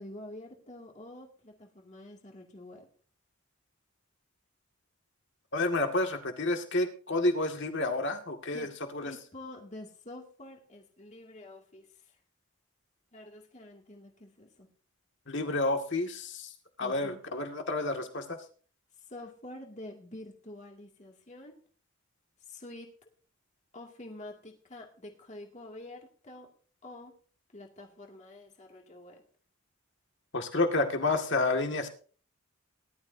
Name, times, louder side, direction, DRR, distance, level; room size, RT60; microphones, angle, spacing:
voice 1, 0.0-2.9 8.5-8.7 9.0-12.2 13.1-14.7 16.8-17.2 18.9-21.6 22.4-23.1 23.7-26.5 26.8-27.1 27.5-29.2, left 1 dB, 35° left, 1 dB, 2.3 m, -47 dB
voice 2, 5.5-9.1 15.3-16.5 16.8-18.4 30.3-31.9, left 2 dB, 55° left, 5 dB, 1.9 m, -30 dB
19.0 x 12.0 x 2.7 m, 0.42 s
head